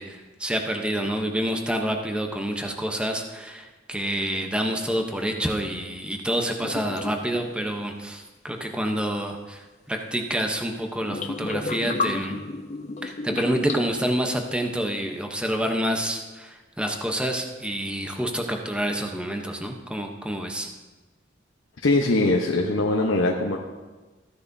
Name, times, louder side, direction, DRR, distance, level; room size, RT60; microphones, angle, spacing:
voice 1, 0.0-12.4 13.0-20.7, equal, 5° right, 3 dB, 0.8 m, -28 dB
sound 1, 6.6-7.5 11.0-14.2, left 3 dB, 35° left, 0.5 m, -32 dB
voice 2, 21.8-23.6, left 2 dB, 90° left, 0 dB, 0.9 m, -21 dB
15.0 x 10.0 x 2.7 m, 1.2 s
head